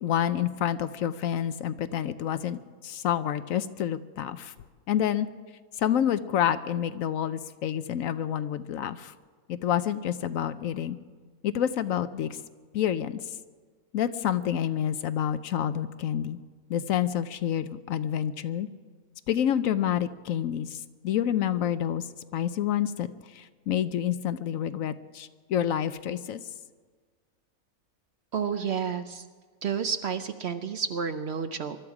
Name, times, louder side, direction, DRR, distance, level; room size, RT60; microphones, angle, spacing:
voice 1, 0.0-4.5 4.9-5.3 5.8-9.1 9.5-11.0 11.4-12.4 12.7-13.2 13.9-16.4 16.7-18.7 19.3-22.1 22.3-23.1 23.3-26.4, left 10 dB, 70° left, 13 dB, 1.0 m, -28 dB
voice 2, 28.3-29.2 29.6-31.8, right 6 dB, 55° right, 9 dB, 0.8 m, -30 dB
23.5 x 12.5 x 4.9 m, 1.5 s
omnidirectional pair, 1.5 m